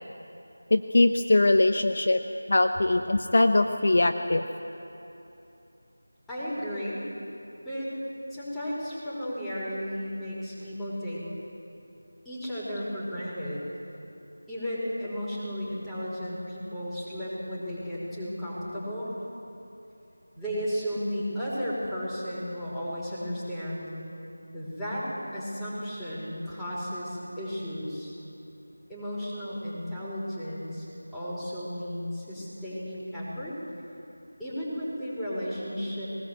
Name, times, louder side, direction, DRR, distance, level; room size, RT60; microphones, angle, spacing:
voice 1, 0.7-2.2 2.5-4.5, left 2 dB, 55° left, 8 dB, 1.0 m, -22 dB
voice 2, 6.3-7.0 7.7-7.9 8.3-11.2 12.3-13.6 14.5-19.1 20.3-23.9 24.5-25.1 25.3-28.2 28.9-30.9 31.1-33.5 34.4-36.1, equal, 5° left, -10 dB, 5.3 m, -34 dB
22.0 x 19.0 x 8.3 m, 2.9 s
figure-of-eight pair, 170°, 0 cm